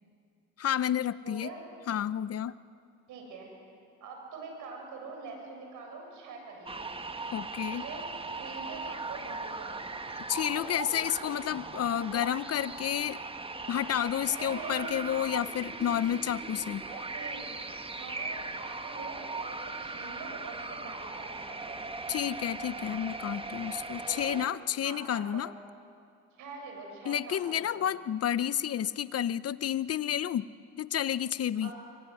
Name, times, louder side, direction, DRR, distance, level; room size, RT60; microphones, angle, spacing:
voice 1, 0.6-1.5 1.9-2.5 7.3-7.8 10.3-13.2 13.7-16.8 22.1-25.5 27.0-30.5 30.8-31.7, left 10 dB, 55° left, 16 dB, 0.8 m, -30 dB
voice 2, 1.2-1.7 3.1-3.5 4.0-6.8 7.8-8.0 8.3-9.8 14.2-15.2 16.8-17.5 18.0-21.8 24.1-24.4 24.8-25.5 26.4-27.7 31.6-31.8, right 4 dB, 85° right, 1 dB, 7.7 m, -44 dB
sound 1, 6.7-24.5, right 3 dB, 20° right, 1.4 m, -39 dB
25.0 x 23.5 x 9.9 m, 2.4 s
cardioid pair, 90°, 30 cm